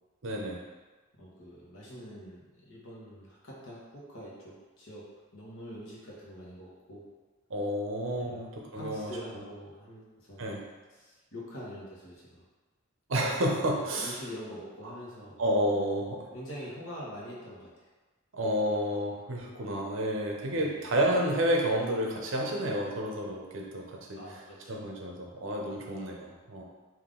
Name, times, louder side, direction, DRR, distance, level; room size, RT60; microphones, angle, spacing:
voice 1, 0.2-0.6 7.5-9.1 10.4-10.6 13.1-14.2 15.4-16.3 18.3-24.4 24.7-26.6, equal, 65° right, -1 dB, 0.7 m, -30 dB
voice 2, 1.2-5.1 5.3-7.1 8.2-8.5 8.7-10.4 11.0-12.4 13.7-15.4 16.3-17.7 20.5-20.9 24.1-24.7, equal, 80° left, -6 dB, 1.1 m, -44 dB
3.6 x 2.6 x 3.7 m, 1.3 s
head